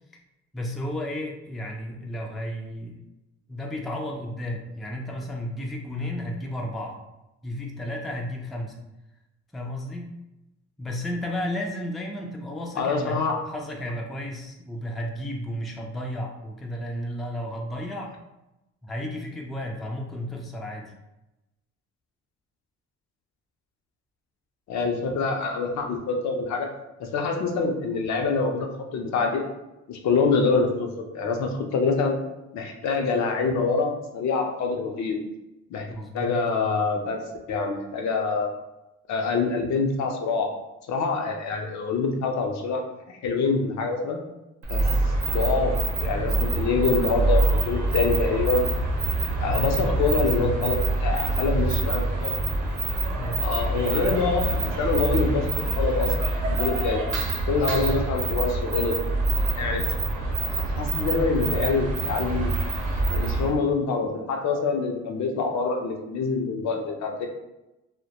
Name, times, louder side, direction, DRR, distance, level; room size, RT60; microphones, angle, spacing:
voice 1, 0.5-3.0 3.5-7.0 7.4-8.8 9.5-10.1 10.8-18.1 18.8-20.9 35.9-36.4 49.5-50.6 53.1-53.4 57.5-58.1 60.1-60.2 63.4-63.6, left 1 dB, ahead, 0 dB, 0.3 m, -33 dB
voice 2, 12.8-13.4 24.7-26.7 27.0-29.4 29.9-32.2 32.5-35.2 35.7-35.9 36.1-37.2 37.5-38.5 39.1-40.5 40.9-42.8 43.1-44.2 44.7-44.8 45.2-48.7 49.4-52.4 53.4-56.1 56.5-57.0 57.5-59.0 59.6-59.9 60.5-62.6 63.1-67.3, left 4 dB, 65° left, 2 dB, 0.5 m, -25 dB
sound 1, 44.6-63.5, right 2 dB, 80° right, 0.7 m, -26 dB
2.1 x 2.1 x 2.8 m, 0.96 s
cardioid pair, 90°, 30 cm